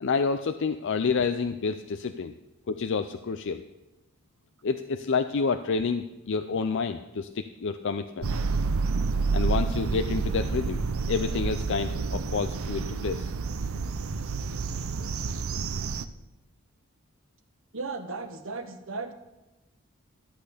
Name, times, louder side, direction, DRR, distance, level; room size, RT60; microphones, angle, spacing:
voice 1, 0.0-2.3 2.7-3.6 4.6-8.4 9.3-13.3, left 5 dB, 60° left, 8 dB, 0.5 m, -29 dB
sound 1, 8.2-16.0, right 4 dB, 90° right, 0.6 m, -29 dB
voice 2, 17.7-19.1, right 3 dB, 65° right, 7 dB, 1.2 m, -35 dB
13.5 x 8.5 x 5.0 m, 0.98 s
head